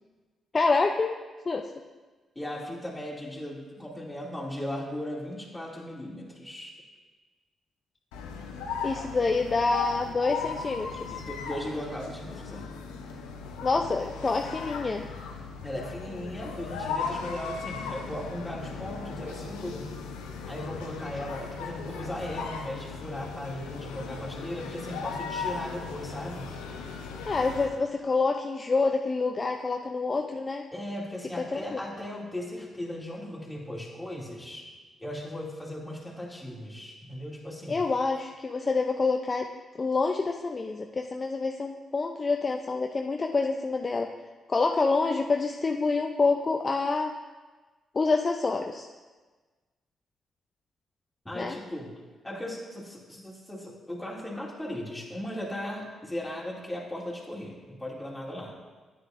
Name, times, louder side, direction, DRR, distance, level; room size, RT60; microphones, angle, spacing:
voice 1, 0.5-1.2 1.5-1.7 8.8-11.1 13.6-15.1 27.3-30.7 31.5-31.8 37.7-39.5 39.8-44.1 44.5-47.1 47.9-48.9 51.3-51.6, left 3 dB, 40° left, 4 dB, 0.5 m, -27 dB
voice 2, 2.4-6.7 11.1-12.7 15.6-19.9 20.5-26.5 30.7-34.6 35.0-37.8 51.2-51.9 52.2-58.5, left 1 dB, 10° left, -4 dB, 2.6 m, -37 dB
sound 1, 8.1-27.8, left 5 dB, 90° left, 0.7 m, -37 dB
9.4 x 8.9 x 2.6 m, 1.3 s
supercardioid pair, 50°, 0 cm